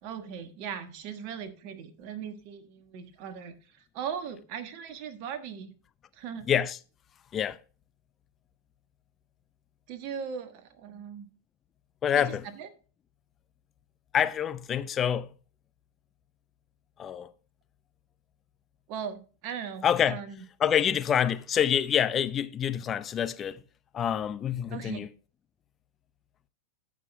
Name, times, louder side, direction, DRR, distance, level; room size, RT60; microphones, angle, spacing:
voice 1, 0.0-3.5 3.9-5.7 6.1-6.5 9.9-11.2 12.1-12.7 18.9-20.4 24.7-25.1, right 7 dB, 45° right, 1.4 m, -39 dB
voice 2, 6.5-6.8 7.3-7.6 12.0-12.5 14.1-15.3 17.0-17.3 19.8-20.2 20.6-23.6 23.9-25.1, left 9 dB, 25° left, 0.6 m, -26 dB
13.5 x 6.0 x 3.2 m
figure-of-eight pair, 90°, 0 cm